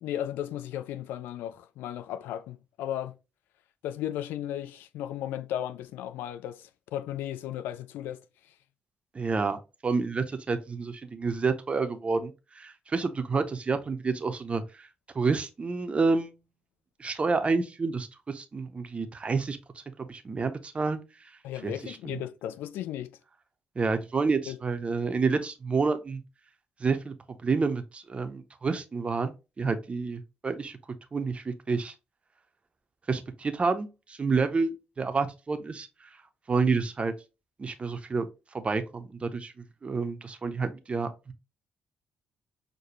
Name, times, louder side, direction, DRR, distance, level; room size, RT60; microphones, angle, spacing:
voice 1, 0.0-3.1 3.8-8.2 21.4-23.1 24.5-24.6, left 11 dB, 60° left, 0.4 m, -35 dB
voice 2, 9.1-14.9 15.1-16.3 17.0-19.6 20.0-21.3 21.6-22.2 23.8-26.2 26.8-27.1 27.4-30.8 31.1-31.9 33.1-36.1 36.5-37.1 37.6-38.3 38.5-39.5 39.8-41.3, right 4 dB, 30° right, 0.6 m, -29 dB
6.4 x 2.2 x 2.9 m
figure-of-eight pair, 40°, 4 cm